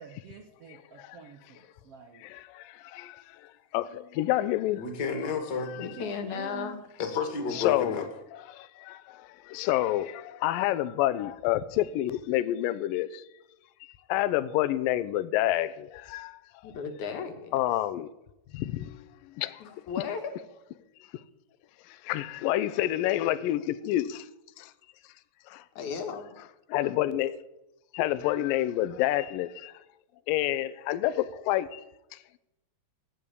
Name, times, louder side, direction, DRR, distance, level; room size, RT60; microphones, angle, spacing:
voice 1, 0.0-2.2 5.8-6.8, right 6 dB, 75° right, 1.4 m, -47 dB
voice 2, 2.2-4.8 7.5-8.0 8.3-13.2 14.1-16.4 17.5-18.1 18.5-19.0 19.4-19.6 21.9-24.3 24.6-24.7 25.5-25.6 26.7-27.4 27.9-29.7 30.3-31.8, left 14 dB, 80° left, 2.3 m, -28 dB
voice 3, 4.8-5.7 7.0-8.1, left 5 dB, 35° left, 2.4 m, -31 dB
voice 4, 5.8-6.8 16.6-17.6 19.6-20.3 25.8-26.4, left 6 dB, 60° left, 2.7 m, -35 dB
15.5 x 9.7 x 8.6 m
omnidirectional pair, 4.3 m